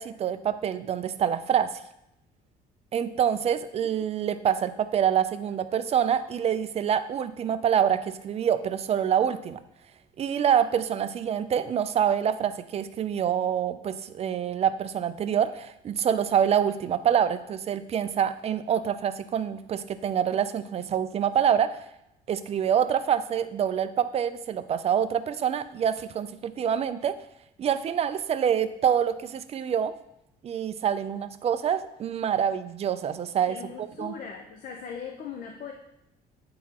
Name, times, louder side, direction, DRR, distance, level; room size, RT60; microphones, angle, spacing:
voice 1, 0.0-1.8 2.9-9.6 10.2-21.8 22.3-27.2 27.6-29.9 30.4-33.6 34.0-34.1, right 8 dB, 40° right, 12 dB, 0.4 m, -26 dB
voice 2, 33.5-35.7, left 6 dB, 55° left, 2 dB, 0.7 m, -39 dB
9.3 x 3.9 x 2.9 m, 0.82 s
cardioid pair, 110°, 17 cm